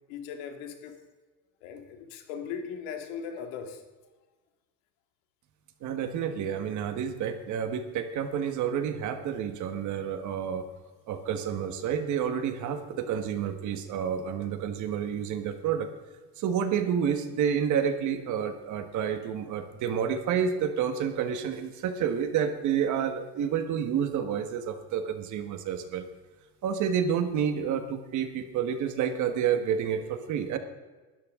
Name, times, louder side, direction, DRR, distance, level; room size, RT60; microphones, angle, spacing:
voice 1, 0.1-1.0 1.6-3.8, left 7 dB, 75° left, 2.4 m, -38 dB
voice 2, 5.8-10.7 11.1-15.9 16.4-26.1 26.6-30.6, right 8 dB, 45° right, 1.5 m, -29 dB
20.0 x 12.5 x 3.7 m
cardioid pair, 165°, 43 cm